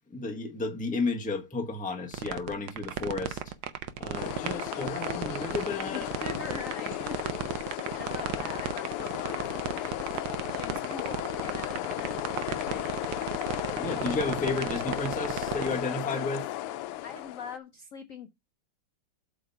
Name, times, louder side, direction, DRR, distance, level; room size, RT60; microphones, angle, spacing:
voice 1, 0.1-3.5 4.0-6.1 13.8-16.5, left 3 dB, 5° left, 0.7 m, -32 dB
sound 1, 2.1-15.8, right 11 dB, 70° right, 1.3 m, -34 dB
sound 2, 4.1-17.6, left 14 dB, 90° left, 1.5 m, -35 dB
voice 2, 5.9-10.1 10.5-12.2 12.4-12.9 17.0-18.3, left 6 dB, 70° left, 0.7 m, -42 dB
8.1 x 3.8 x 5.5 m
omnidirectional pair, 2.4 m